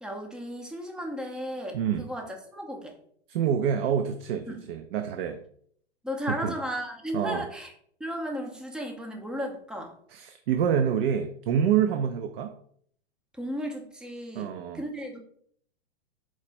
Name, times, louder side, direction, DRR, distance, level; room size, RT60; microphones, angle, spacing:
voice 1, 0.0-3.0 4.5-4.7 6.0-7.7 8.0-9.9 13.3-15.2, equal, 5° right, 2 dB, 0.4 m, -35 dB
voice 2, 1.7-2.1 3.3-5.4 6.3-6.5 7.1-7.5 10.1-12.5 14.4-14.8, right 8 dB, 65° right, 7 dB, 0.5 m, -27 dB
4.5 x 2.1 x 4.1 m, 0.62 s
hypercardioid pair, 130°, 31 cm